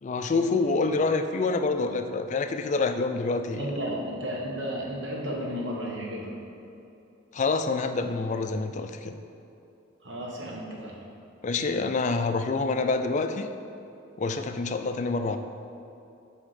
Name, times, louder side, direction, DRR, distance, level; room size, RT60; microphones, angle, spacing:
voice 1, 0.0-3.7 7.3-9.1 11.4-13.5 14.2-15.4, left 3 dB, 35° left, 8 dB, 0.4 m, -27 dB
voice 2, 3.6-6.3 10.0-11.0, equal, 65° right, -3 dB, 1.3 m, -33 dB
8.3 x 3.6 x 5.6 m, 2.8 s
head